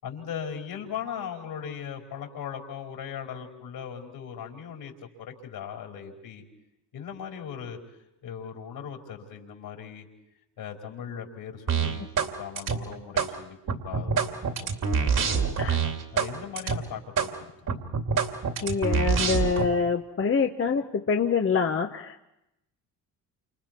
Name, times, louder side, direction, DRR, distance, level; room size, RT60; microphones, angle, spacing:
voice 1, 0.0-4.9 5.2-6.4 6.9-7.8 8.2-10.1 10.6-13.6 13.8-15.5 16.1-17.5, left 8 dB, 65° left, 1 dB, 4.7 m, -38 dB
sound 1, 11.7-12.3 12.6-13.3 13.7-16.3 16.6-16.8 17.2-17.3 17.7-19.7, right 6 dB, 50° right, 2.7 m, -25 dB
voice 2, 18.6-22.3, left 5 dB, 35° left, 4 dB, 1.1 m, -25 dB
29.0 x 28.0 x 4.5 m, 0.85 s
cardioid pair, 90°, 39 cm